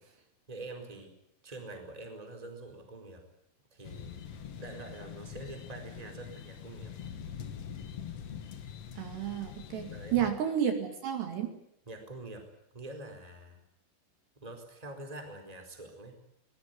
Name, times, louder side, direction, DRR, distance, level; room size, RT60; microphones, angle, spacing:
voice 1, 0.5-1.1 1.4-3.2 3.7-4.2 4.6-6.9 9.9-10.2 11.9-12.5 12.7-13.6 14.4-16.2, right 2 dB, 10° right, 5 dB, 3.9 m, -45 dB
sound 1, 3.8-10.3, left 8 dB, 70° left, 1.4 m, -44 dB
voice 2, 9.0-11.5, right 9 dB, 65° right, 5 dB, 4.2 m, -31 dB
23.5 x 20.5 x 9.7 m, 0.74 s
omnidirectional pair, 5.5 m